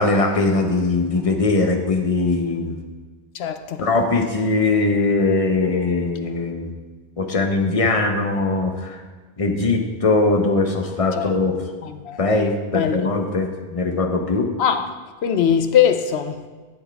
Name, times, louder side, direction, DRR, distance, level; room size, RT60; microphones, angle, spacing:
voice 1, 0.0-2.8 3.8-6.7 7.2-9.0 9.4-11.7 12.2-14.5, left 3 dB, 35° left, 1.0 m, -21 dB
voice 2, 3.3-3.9 11.2-11.3 11.8-12.2 12.7-13.1 14.6-14.9 15.2-16.4, left 8 dB, 90° left, 1.0 m, -21 dB
12.0 x 7.2 x 3.5 m
omnidirectional pair, 1.0 m